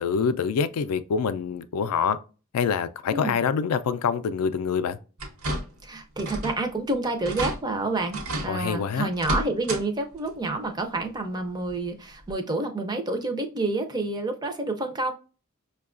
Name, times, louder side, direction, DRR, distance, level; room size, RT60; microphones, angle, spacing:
voice 1, 0.0-2.2 2.5-5.0 8.5-9.1, left 6 dB, 90° left, 0.3 m, -25 dB
sound 1, 5.2-5.9 6.2-6.6 6.9-7.0 7.2-7.6 8.1-8.5 9.1-9.8 10.2-10.3 11.7-11.8 12.3-12.4, right 1 dB, 75° right, 0.9 m, -31 dB
voice 2, 5.8-15.1, right 2 dB, 20° right, 0.4 m, -29 dB
5.4 x 2.2 x 2.4 m
head